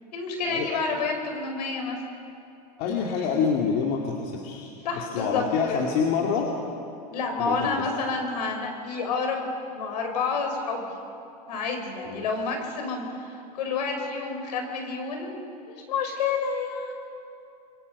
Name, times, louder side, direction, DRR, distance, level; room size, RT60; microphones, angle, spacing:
voice 1, 0.1-2.0 4.8-5.4 5.7-5.8 7.1-10.9 11.5-15.4 15.7-16.9, left 4 dB, 80° left, 3 dB, 5.3 m, -29 dB
voice 2, 2.8-6.5 7.4-7.8 12.1-12.3, left 6 dB, 60° left, 0 dB, 2.5 m, -27 dB
28.5 x 23.0 x 5.5 m, 2.7 s
hypercardioid pair, 105°, 21 cm